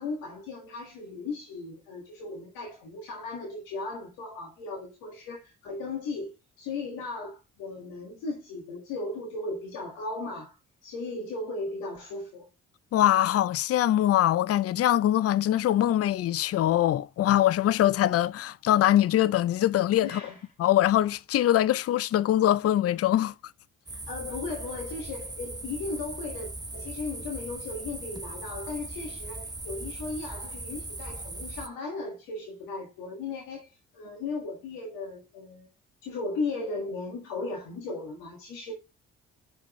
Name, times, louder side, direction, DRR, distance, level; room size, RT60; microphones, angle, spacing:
voice 1, 0.0-12.5 20.0-20.4 23.9-35.7 36.0-38.7, left 3 dB, 85° left, 1.6 m, -36 dB
voice 2, 12.9-20.2 20.6-23.3, left 12 dB, 45° left, 0.4 m, -23 dB
sound 1, 23.9-31.7, right 2 dB, 10° right, 0.8 m, -39 dB
6.4 x 5.1 x 3.0 m
supercardioid pair, 50°, 34 cm